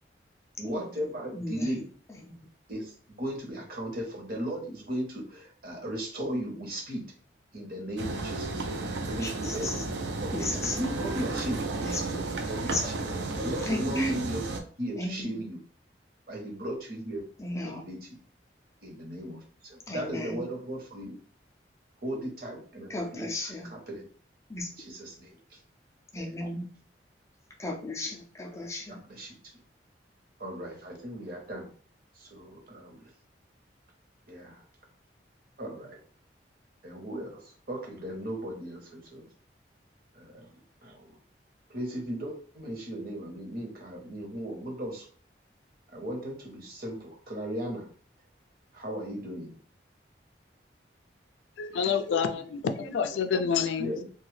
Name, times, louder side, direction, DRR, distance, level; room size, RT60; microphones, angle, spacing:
voice 1, 0.6-1.9 2.7-7.0 7.5-8.6 9.1-9.7 10.2-10.5 10.8-11.6 12.3-13.1 13.3-14.4 14.8-15.6 16.3-17.2 17.5-18.2 18.8-21.2 22.0-24.0 24.8-25.4 26.2-26.3 28.9-29.4 30.4-31.7 32.2-33.1 34.3-34.6 35.6-36.0 36.8-39.3 40.1-40.5 40.8-41.1 41.7-45.1 45.9-47.9 48.7-49.6 53.8-54.0, right 1 dB, 50° right, 0 dB, 0.9 m, -36 dB
voice 2, 1.3-1.8 2.2-2.3 9.2-9.9 10.3-10.8 11.8-12.3 12.6-12.9 13.6-14.3 15.0-15.3 17.4-17.8 19.9-20.5 22.9-23.7 24.5-24.7 26.1-26.7 27.6-29.0, left 1 dB, 15° left, 1 dB, 0.4 m, -34 dB
sound 1, 8.0-14.6, right 3 dB, 75° right, 0.5 m, -33 dB
voice 3, 51.6-53.9, left 6 dB, 90° left, 8 dB, 0.4 m, -28 dB
2.7 x 2.3 x 3.1 m, 0.44 s
head